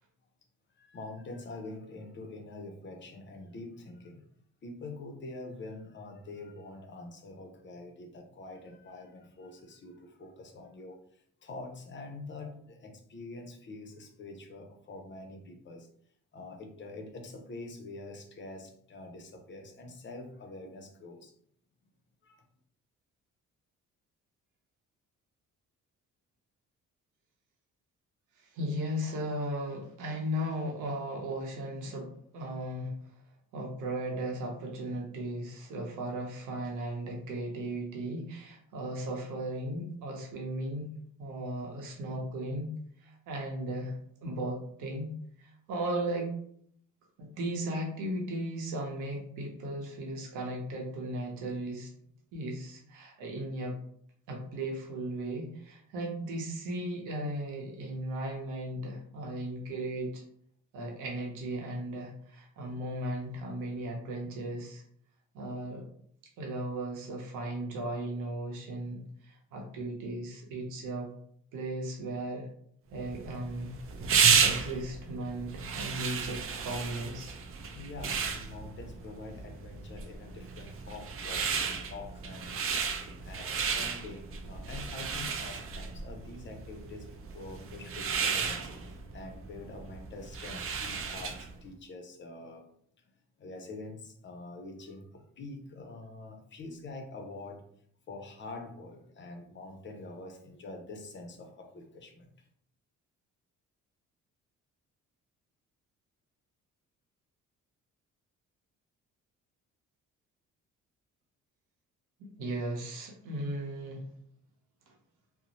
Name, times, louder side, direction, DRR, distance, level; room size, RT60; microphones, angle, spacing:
voice 1, 0.8-4.3 4.6-15.9 16.3-21.3 22.2-22.4 77.7-87.1 87.3-92.6 93.4-97.6 98.1-102.3, left 2 dB, 40° left, 4 dB, 0.5 m, -45 dB
voice 2, 28.4-32.9 33.5-40.9 41.2-44.0 44.2-46.3 47.2-51.9 52.3-53.8 54.3-60.2 60.7-64.8 65.3-65.8 66.4-71.1 71.5-72.5 72.9-77.4 112.4-114.0 114.9-115.0, right 1 dB, 85° right, 0 dB, 0.7 m, -36 dB
sound 1, 73.0-91.6, right 6 dB, 45° right, 0.4 m, -32 dB
2.6 x 2.0 x 2.9 m, 0.64 s
cardioid pair, 90°, 30 cm